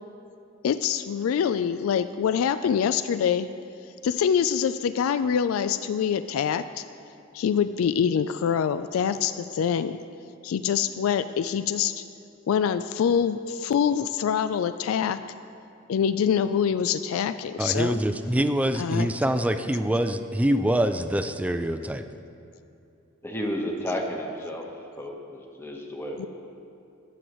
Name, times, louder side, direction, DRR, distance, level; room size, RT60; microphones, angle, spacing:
voice 1, 0.6-3.5 4.0-6.8 7.3-10.0 10.4-12.0 12.5-15.2 15.9-18.0 18.8-19.1 26.2-26.3, left 7 dB, 85° left, 12 dB, 0.3 m, -25 dB
voice 2, 17.6-22.0, right 1 dB, 5° right, 8 dB, 0.3 m, -25 dB
voice 3, 23.2-24.7 25.0-26.3, equal, 10° left, 1 dB, 1.1 m, -32 dB
22.5 x 7.8 x 3.1 m, 2.6 s
head